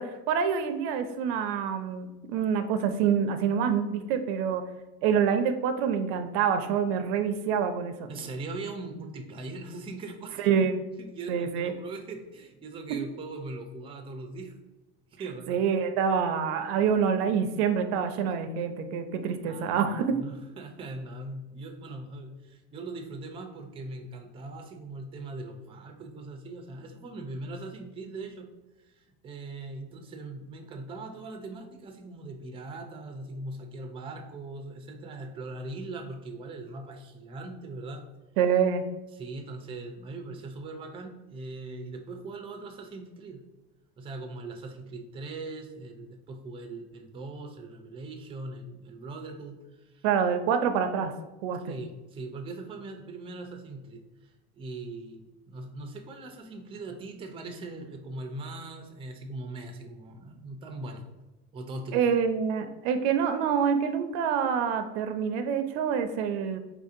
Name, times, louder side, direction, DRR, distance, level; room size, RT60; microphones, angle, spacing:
voice 1, 0.0-4.6 5.0-8.1 10.4-10.8 11.3-11.7 15.5-20.2 38.4-38.9 50.0-51.1 51.4-51.8 61.9-66.6, right 7 dB, 75° right, 8 dB, 0.5 m, -26 dB
voice 2, 8.1-10.5 11.0-14.6 15.1-15.6 19.5-28.5 28.8-38.0 39.1-43.4 44.0-50.1 51.7-61.0 61.5-62.0, right 2 dB, 20° right, 4 dB, 0.4 m, -40 dB
4.3 x 2.7 x 2.5 m, 1.1 s
supercardioid pair, 120°, 30 cm